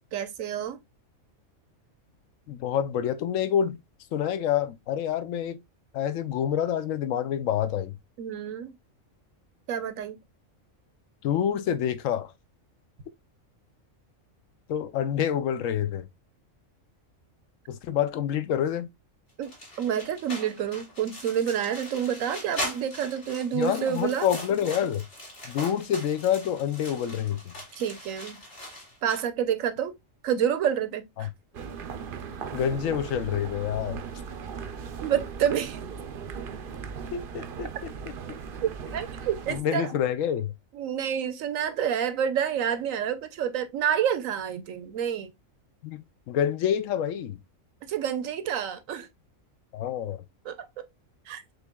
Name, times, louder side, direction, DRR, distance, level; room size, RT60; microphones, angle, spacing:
voice 1, 0.1-0.8 8.2-8.7 9.7-10.2 19.4-19.5 19.8-24.3 27.8-28.4 29.0-29.9 30.2-31.3 35.0-35.8 38.6-39.9 40.7-45.3 47.9-49.1 50.4-50.7 51.3-51.4, right 9 dB, 80° right, 1.1 m, -28 dB
voice 2, 2.5-3.8 4.1-5.6 5.9-7.9 11.2-12.3 14.7-16.1 17.7-18.9 23.5-25.0 25.4-27.5 31.2-31.3 32.5-34.0 37.1-37.9 39.5-40.5 45.8-47.4 49.7-50.2, left 9 dB, 75° left, 1.0 m, -27 dB
sound 1, 19.4-29.2, left 1 dB, 45° left, 3.3 m, -40 dB
sound 2, 31.5-39.6, right 6 dB, 55° right, 0.6 m, -38 dB
6.5 x 3.2 x 2.2 m
omnidirectional pair, 1.4 m